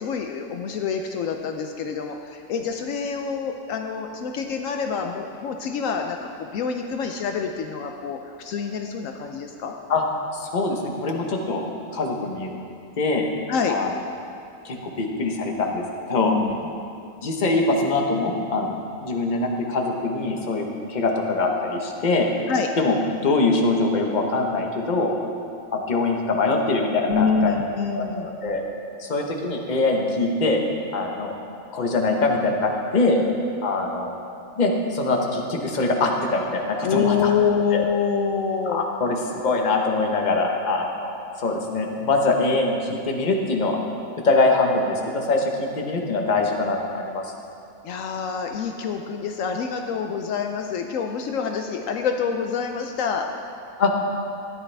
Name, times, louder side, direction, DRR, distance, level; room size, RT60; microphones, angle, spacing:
voice 1, 0.0-9.7 13.5-13.8 16.2-16.6 22.5-22.7 27.1-28.3 36.8-38.8 47.8-53.3, left 6 dB, 75° left, 4 dB, 1.0 m, -26 dB
voice 2, 10.3-11.6 11.9-12.5 13.0-13.3 13.7-13.9 14.6-16.4 17.2-22.3 22.8-22.9 23.2-25.1 25.7-27.5 27.9-28.6 29.0-30.6 30.9-31.3 31.7-33.2 33.6-34.1 34.6-37.3 37.7-37.8 38.7-43.8 44.2-47.3 53.8-53.9, left 3 dB, 35° left, 1 dB, 1.0 m, -23 dB
13.5 x 10.5 x 3.4 m, 2.5 s
omnidirectional pair, 1.4 m